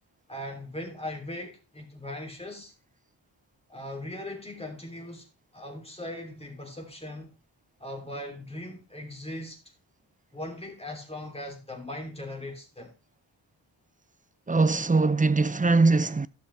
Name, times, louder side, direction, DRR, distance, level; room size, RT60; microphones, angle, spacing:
voice 1, 0.3-2.7 3.7-5.3 5.5-7.3 7.8-9.6 10.3-12.9, left 1 dB, 15° left, 3.0 m, -39 dB
voice 2, 14.5-16.3, right 3 dB, 20° right, 0.4 m, -21 dB
12.5 x 6.3 x 3.3 m
wide cardioid pair, 45°, 46 cm